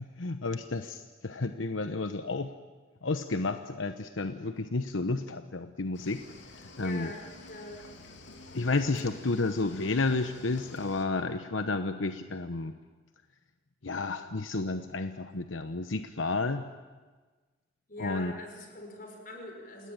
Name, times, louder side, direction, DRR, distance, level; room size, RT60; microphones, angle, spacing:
voice 1, 0.0-2.5 3.0-6.2 6.8-7.1 8.5-12.7 13.8-16.7 18.0-18.3, left 3 dB, 90° left, 8 dB, 1.0 m, -31 dB
Cricket / Waves surf, 5.9-11.1, left 3 dB, 70° left, 2.9 m, -50 dB
voice 2, 6.8-7.8 17.9-19.9, left 2 dB, 45° left, 3 dB, 5.4 m, -42 dB
28.5 x 18.5 x 9.1 m, 1.3 s
head